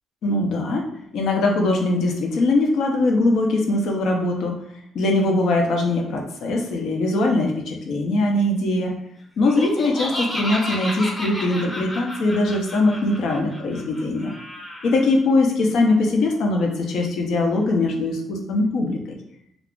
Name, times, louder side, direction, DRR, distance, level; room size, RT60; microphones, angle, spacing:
voice 1, 0.2-4.6 4.9-9.0 9.4-14.3 14.8-19.2, left 2 dB, 75° left, 1 dB, 0.6 m, -21 dB
Laughter, 9.4-15.0, equal, 20° left, 0.8 m, -32 dB
2.4 x 2.3 x 3.6 m, 0.76 s
cardioid pair, 90°, 0 cm